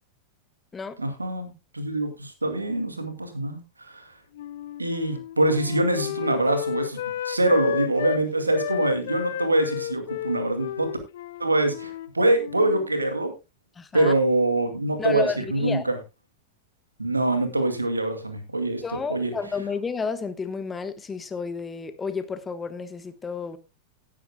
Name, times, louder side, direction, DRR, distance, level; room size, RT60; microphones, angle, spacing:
voice 1, 1.0-4.0 4.8-7.0 7.2-10.9 11.4-13.3 13.9-15.9 17.0-18.8 19.1-19.3, right 2 dB, 80° right, 8 dB, 2.2 m, -24 dB
Wind instrument woodwind instrument, 4.3-8.2 8.5-12.1 12.4-12.9, left 12 dB, 60° left, 0.9 m, -32 dB
voice 2, 13.8-14.1 15.0-15.8 18.8-23.6, left 5 dB, 15° left, 11 dB, 1.1 m, -31 dB
17.5 x 9.8 x 2.2 m, 0.25 s
figure-of-eight pair, 90°, 0 cm